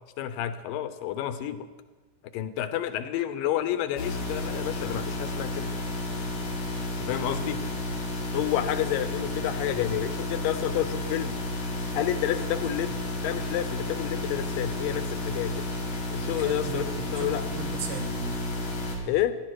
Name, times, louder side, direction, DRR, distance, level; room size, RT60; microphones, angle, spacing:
voice 1, 0.2-1.7 2.3-5.7 7.0-7.6 8.3-11.4 11.9-15.5 16.1-17.4 19.1-19.4, left 11 dB, 90° left, 11 dB, 2.5 m, -30 dB
sound 1, 4.0-19.0, left 1 dB, 60° left, 3.7 m, -32 dB
voice 2, 16.2-18.5, right 5 dB, 75° right, 6 dB, 2.8 m, -38 dB
16.0 x 12.0 x 4.7 m, 1.2 s
omnidirectional pair, 3.8 m